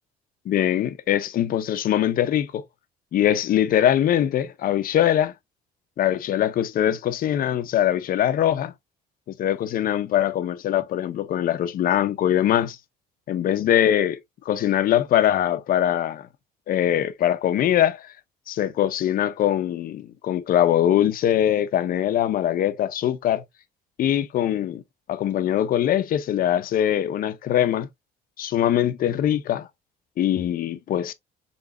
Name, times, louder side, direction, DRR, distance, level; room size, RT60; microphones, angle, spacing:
voice 1, 0.5-2.6 3.1-5.3 6.0-8.7 9.4-12.8 13.3-14.2 14.5-16.3 16.7-18.1 18.5-23.4 24.0-24.8 25.1-27.9 28.4-29.7 30.2-31.1, left 11 dB, 55° left, 0.7 m, -22 dB
3.9 x 3.9 x 2.6 m
cardioid pair, 110°, 17 cm